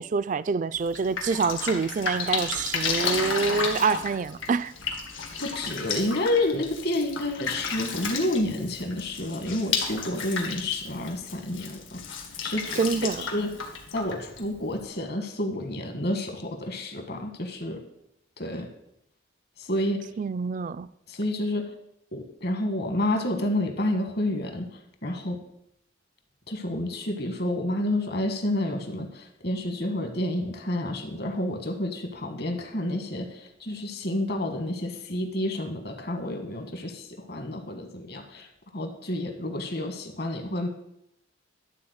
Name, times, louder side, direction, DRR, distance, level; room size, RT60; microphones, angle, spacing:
voice 1, 0.0-4.7 12.8-13.3 20.2-20.9, right 5 dB, 40° right, 0.3 m, -26 dB
Drip, 0.8-14.8, left 5 dB, 80° left, 1.8 m, -33 dB
voice 2, 5.4-12.0 12.4-12.7 13.2-13.5 13.9-17.8 18.4-18.7 19.6-20.0 21.1-21.7 22.1-24.7 25.0-25.4 26.5-38.5 38.7-40.7, left 1 dB, 55° left, 1.4 m, -29 dB
12.0 x 4.2 x 8.0 m
head